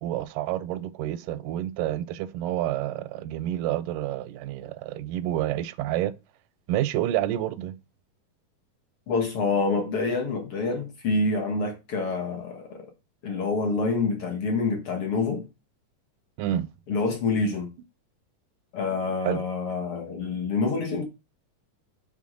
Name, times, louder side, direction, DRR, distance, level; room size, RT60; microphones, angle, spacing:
voice 1, 0.0-6.1 6.7-7.8 16.4-16.7 19.3-19.4, right 13 dB, 90° right, 2.2 m, -29 dB
voice 2, 9.1-12.9 13.2-15.5 16.9-17.7 18.7-21.0, left 3 dB, 55° left, 1.7 m, -27 dB
7.3 x 3.8 x 6.2 m
omnidirectional pair, 3.7 m